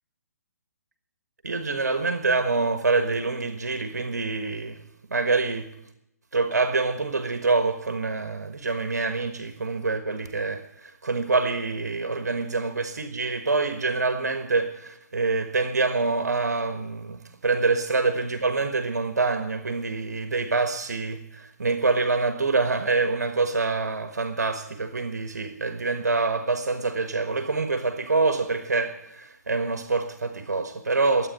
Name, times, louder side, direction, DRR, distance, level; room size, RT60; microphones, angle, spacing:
voice 1, 1.4-4.8 5.1-5.7 6.3-31.3, right 3 dB, 75° right, 1.4 m, -26 dB
12.5 x 8.6 x 10.0 m
figure-of-eight pair, 135°, 9 cm